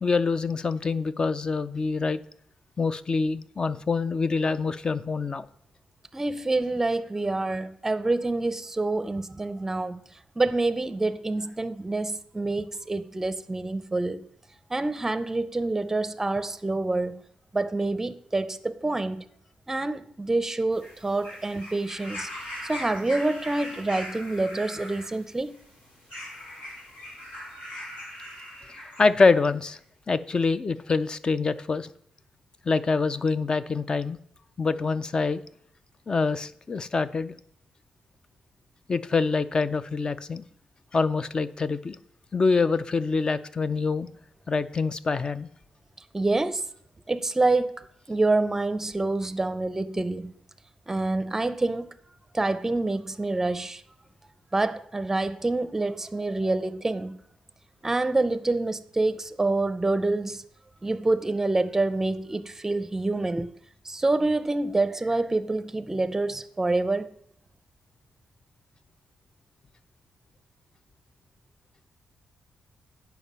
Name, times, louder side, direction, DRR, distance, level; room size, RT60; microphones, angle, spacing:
voice 1, 0.0-2.2 2.8-5.5 29.0-29.8 30.1-31.9 32.7-34.2 34.6-35.4 36.1-37.3 38.9-40.4 40.9-42.0 42.3-44.1 44.5-45.5, left 4 dB, 35° left, 0.4 m, -25 dB
voice 2, 6.1-10.0 10.4-14.2 14.7-17.2 17.5-19.2 19.7-22.3 22.6-25.6 46.1-46.7 47.1-50.3 50.9-51.9 52.3-53.8 54.5-57.2 57.8-60.4 60.8-63.5 63.8-67.1, right 2 dB, 15° right, 0.5 m, -27 dB
sound 1, 20.7-29.4 30.3-30.4, left 1 dB, 90° left, 4.4 m, -40 dB
9.2 x 5.8 x 5.4 m
cardioid pair, 110°, 3 cm